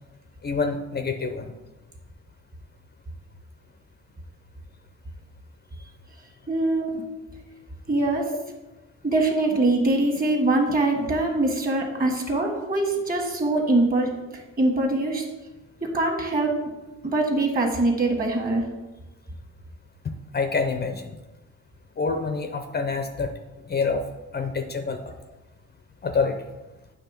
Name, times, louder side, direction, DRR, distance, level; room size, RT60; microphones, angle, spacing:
voice 1, 0.4-1.5 20.3-21.2 22.0-23.3 23.7-24.1 24.3-25.1 26.0-26.4, left 4 dB, 35° left, 7 dB, 0.6 m, -26 dB
voice 2, 6.5-7.0 7.9-8.3 9.0-15.2 15.8-16.5 17.0-18.6, right 2 dB, 30° right, 2 dB, 1.6 m, -23 dB
8.1 x 3.1 x 5.8 m, 1.1 s
cardioid pair, 90°, 30 cm